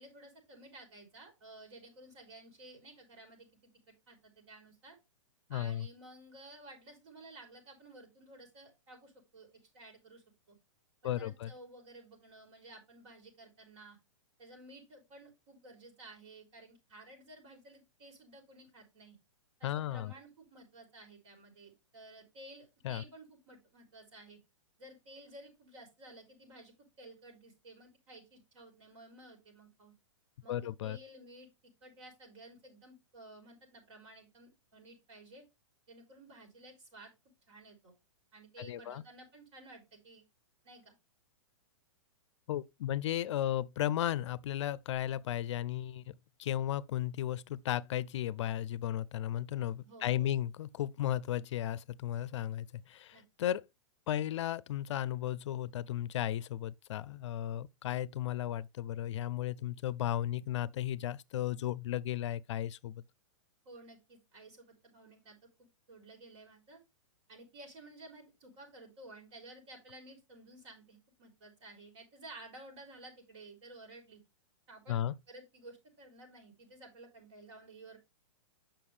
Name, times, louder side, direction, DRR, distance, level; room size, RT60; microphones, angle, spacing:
voice 1, 0.0-3.7 4.1-5.0 5.5-10.6 11.0-14.0 14.4-19.2 19.6-24.4 24.8-26.7 27.0-29.9 30.4-31.5 31.8-35.4 35.9-37.1 37.5-37.9 38.3-40.2 40.6-41.0 49.8-50.3 53.1-53.2 63.7-66.8 67.3-74.2 74.7-75.0 75.3-78.0, right 2 dB, 60° right, 3.7 m, -54 dB
voice 2, 5.5-5.9 11.0-11.5 19.6-20.1 22.8-23.0 30.5-31.0 38.6-39.0 42.5-53.6 54.1-63.0 74.9-75.1, left 12 dB, 65° left, 0.4 m, -35 dB
6.9 x 5.8 x 3.2 m
hypercardioid pair, 145°, 17 cm